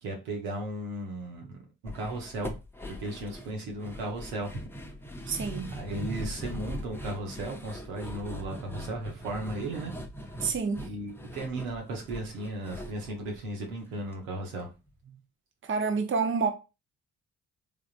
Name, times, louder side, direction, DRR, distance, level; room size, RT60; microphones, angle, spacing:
voice 1, 0.0-1.6 1.8-2.5 3.0-4.5 5.7-9.9 10.8-14.7, right 1 dB, 90° right, 0.9 m, -35 dB
sound 1, 1.9-14.1 14.4-14.5 14.9-15.0, equal, 5° left, 0.5 m, -41 dB
voice 2, 5.3-5.8 10.4-10.9 15.6-16.5, right 5 dB, 30° right, 0.7 m, -28 dB
3.3 x 2.4 x 2.4 m
hypercardioid pair, 45°, 40 cm